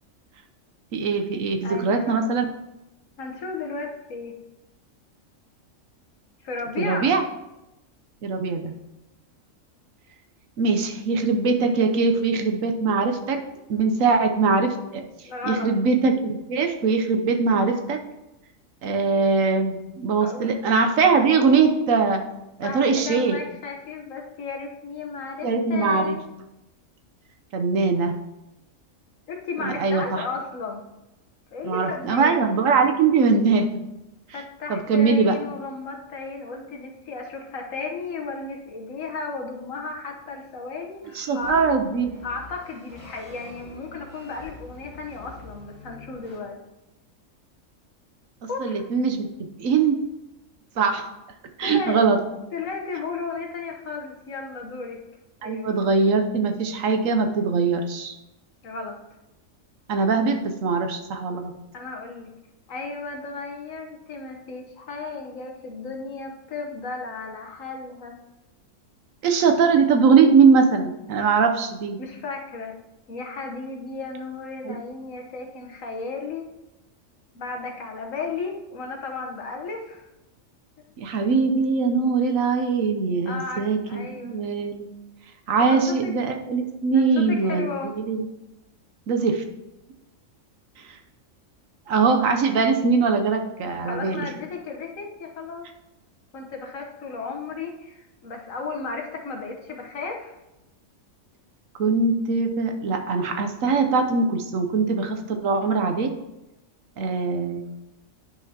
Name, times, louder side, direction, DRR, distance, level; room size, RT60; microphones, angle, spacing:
voice 1, 0.9-2.5 6.8-7.2 8.2-8.7 10.6-13.4 13.7-15.0 15.4-18.0 18.8-22.2 22.6-23.4 25.4-26.2 27.5-28.1 29.6-30.2 31.6-33.7 34.7-35.4 41.1-42.1 48.6-50.0 50.8-51.1 51.6-52.2 55.4-58.2 59.9-61.5 69.2-72.0 74.6-74.8 81.0-84.9 85.5-87.7 88.0-88.2 89.1-89.4 90.8-91.0 91.9-94.3 101.8-106.1 107.0-107.7, right 4 dB, 75° right, 5 dB, 1.2 m, -21 dB
voice 2, 1.6-2.3 3.2-4.4 6.4-7.2 15.2-15.7 20.2-20.5 22.6-26.2 29.3-30.8 31.5-32.5 34.3-41.6 42.2-46.6 48.5-48.8 51.6-52.0 52.5-55.0 55.4-55.6 58.6-59.0 61.7-62.3 62.7-68.2 72.0-72.7 73.1-76.5 77.3-80.1 83.3-84.4 85.6-86.2 86.9-87.9 93.8-95.7 96.3-100.3, left 4 dB, 75° left, 2 dB, 1.4 m, -34 dB
sound 1, 41.0-46.4, left 3 dB, 50° right, 3.5 m, -46 dB
10.5 x 5.8 x 2.8 m, 0.94 s
omnidirectional pair, 1.4 m